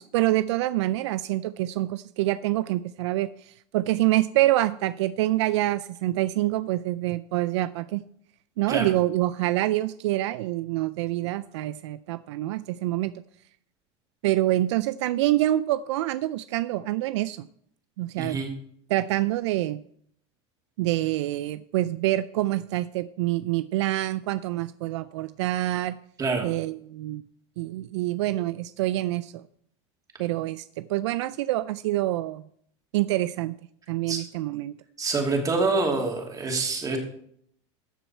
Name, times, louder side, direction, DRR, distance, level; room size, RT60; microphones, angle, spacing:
voice 1, 0.0-8.0 8.6-13.1 14.2-17.5 18.0-18.4 18.9-19.8 20.8-26.0 26.4-27.2 27.6-29.4 30.2-32.4 32.9-33.6 33.9-34.7, right 16 dB, 80° right, 15 dB, 0.4 m, -26 dB
voice 2, 18.2-18.5 26.2-26.5 34.1-34.2 35.0-37.0, right 3 dB, 25° right, 2 dB, 2.7 m, -26 dB
13.5 x 6.9 x 4.4 m, 0.66 s
supercardioid pair, 115°, 15 cm